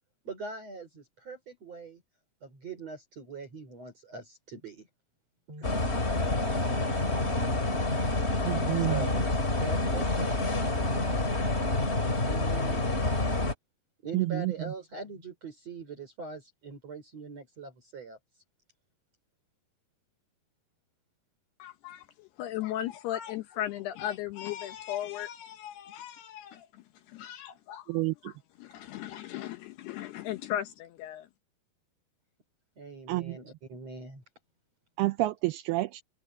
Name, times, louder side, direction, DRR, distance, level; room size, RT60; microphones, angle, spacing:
voice 1, 0.2-2.0 2.4-4.9 5.5-5.6 8.8-11.2 12.2-12.9 14.0-18.2 32.8-34.2, right 3 dB, 40° right, 5.7 m, -42 dB
sound 1, 5.6-13.5, left 2 dB, 20° left, 1.9 m, -28 dB
voice 2, 8.5-9.0 14.1-14.5 27.9-28.3 33.1-33.4 35.0-36.0, right 18 dB, 80° right, 2.6 m, -29 dB
voice 3, 21.6-26.7 27.1-28.3 28.6-31.3, left 12 dB, 75° left, 2.9 m, -37 dB
omnidirectional pair, 4.9 m